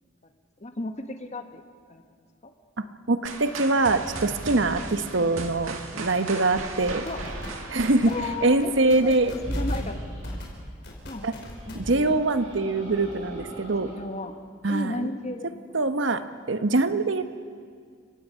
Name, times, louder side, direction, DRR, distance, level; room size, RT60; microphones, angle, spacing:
voice 1, 0.6-1.6 1.9-2.0 2.4-2.5 7.0-7.2 8.1-10.0 11.1-11.3 11.7-12.1 13.9-14.3 14.7-15.5, left 2 dB, 35° left, 6 dB, 1.3 m, -34 dB
voice 2, 2.8-7.0 7.7-8.1 8.4-9.3 11.2-11.3 11.7-13.9 14.6-15.1 15.7-16.2 16.5-17.2, right 2 dB, 65° right, 10 dB, 1.0 m, -23 dB
sound 1, 3.2-9.1, right 3 dB, 85° right, 2.0 m, -37 dB
sound 2, 5.9-6.1 6.5-6.8 7.0-7.5 8.0-8.3 8.6-9.9 10.2-10.4 10.8-11.9, left 1 dB, 55° left, 4.9 m, -41 dB
sound 3, 9.3-10.5 11.4-14.0, equal, 35° right, 6.3 m, -36 dB
30.0 x 17.0 x 5.6 m, 2.1 s
head